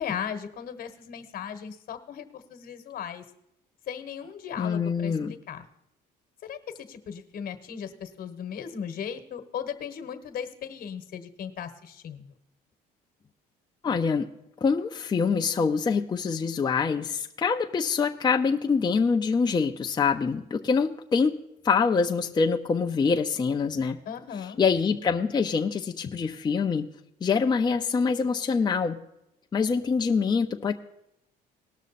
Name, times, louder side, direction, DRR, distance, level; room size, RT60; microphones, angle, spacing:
voice 1, 0.0-3.2 3.9-5.6 6.4-12.3 24.0-24.6, left 8 dB, 60° left, 9 dB, 1.3 m, -37 dB
voice 2, 4.6-5.3 13.8-14.3 14.6-21.4 21.6-24.0 24.6-26.9 27.2-29.0 29.5-30.7, left 5 dB, 25° left, 2 dB, 0.6 m, -25 dB
19.0 x 6.3 x 4.2 m, 0.81 s
cardioid pair, 110°, 17 cm